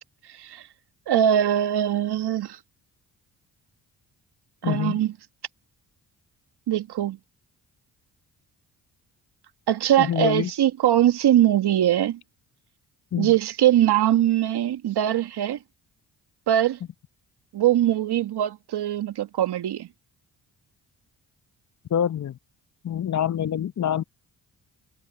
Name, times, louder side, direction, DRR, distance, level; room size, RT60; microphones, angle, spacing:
voice 1, 1.1-2.6 4.6-5.1 6.7-7.2 9.7-12.2 13.2-15.6 16.5-16.8 17.5-19.9, right 11 dB, 65° right, 1.6 m, -22 dB
voice 2, 4.6-5.0 10.0-10.5 13.1-13.3 21.9-22.4 22.8-24.0, left 9 dB, 40° left, 0.8 m, -25 dB
supercardioid pair, 50°, 42 cm